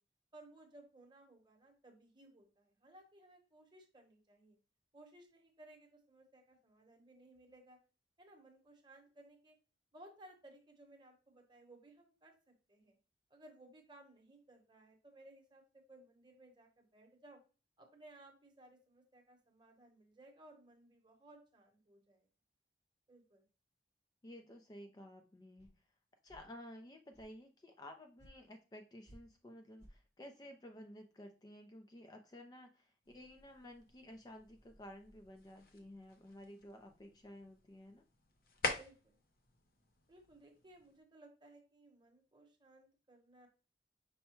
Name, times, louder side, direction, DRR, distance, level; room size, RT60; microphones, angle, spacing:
voice 1, 0.3-4.6 4.9-7.8 8.2-9.5 9.9-12.3 12.7-12.9 13.3-17.4 17.8-22.3 23.1-23.4 38.8-39.2 40.1-43.5, right 1 dB, 25° right, 2 dB, 1.0 m, -61 dB
voice 2, 24.2-25.7 26.2-38.0, left 1 dB, 20° left, 5 dB, 0.4 m, -54 dB
sound 1, 25.6-25.7 26.3-26.5 27.1-27.3 28.2-28.3 29.1-29.2 29.8-29.9, right 1 dB, 75° left, 1.9 m, -59 dB
sound 2, 33.0-41.0, left 3 dB, 55° left, 0.7 m, -47 dB
5.5 x 2.1 x 4.3 m, 0.35 s
head